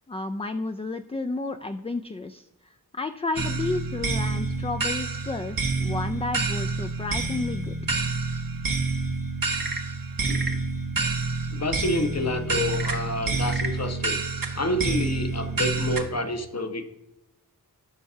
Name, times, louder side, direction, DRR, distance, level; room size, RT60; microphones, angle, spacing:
voice 1, 0.1-2.5 2.9-7.8, left 3 dB, 15° left, 8 dB, 0.3 m, -31 dB
sound 1, 3.4-16.0, right 3 dB, 60° right, 0.9 m, -28 dB
Frog / Percussion / Wood, 9.4-10.7 12.7-13.8, right 3 dB, 25° right, 0.8 m, -35 dB
voice 2, 10.2-10.5 11.5-14.2 14.6-17.0, left 1 dB, 40° left, 8 dB, 0.8 m, -28 dB
12.0 x 4.6 x 2.7 m, 0.90 s
cardioid pair, 40°, 39 cm